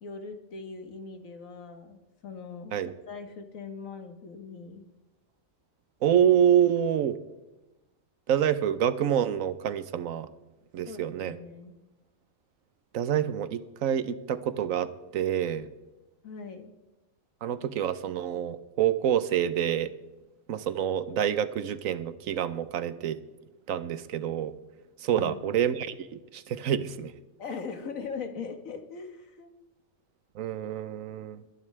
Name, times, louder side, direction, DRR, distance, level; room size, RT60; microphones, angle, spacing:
voice 1, 0.0-4.8 10.9-11.8 16.2-16.7 25.2-25.4 27.4-29.5, left 5 dB, 85° left, 6 dB, 1.8 m, -40 dB
voice 2, 6.0-7.2 8.3-10.3 10.7-11.3 12.9-15.7 17.4-19.9 20.5-23.2 23.7-24.5 25.0-27.1 30.4-31.4, right 9 dB, 85° right, 14 dB, 1.2 m, -27 dB
21.5 x 11.0 x 3.3 m, 1.0 s
omnidirectional pair, 1.4 m